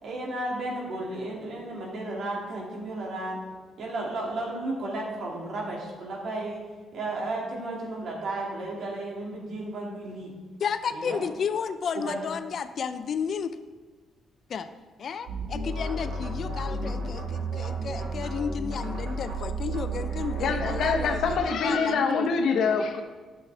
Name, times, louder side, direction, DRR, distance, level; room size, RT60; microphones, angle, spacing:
voice 1, 0.0-3.4 3.8-6.6 6.9-10.3 10.9-11.2 11.9-12.2, right 2 dB, 65° right, -3 dB, 2.3 m, -33 dB
voice 2, 10.6-13.6 14.5-14.7 15.0-21.2 21.6-22.2, left 6 dB, 55° left, 12 dB, 0.4 m, -32 dB
sound 1, 15.3-21.4, right 3 dB, 80° right, 1.6 m, -32 dB
voice 3, 20.0-23.0, left 5 dB, 75° left, 4 dB, 0.8 m, -26 dB
9.3 x 6.2 x 3.3 m, 1.4 s
cardioid pair, 90°, 0 cm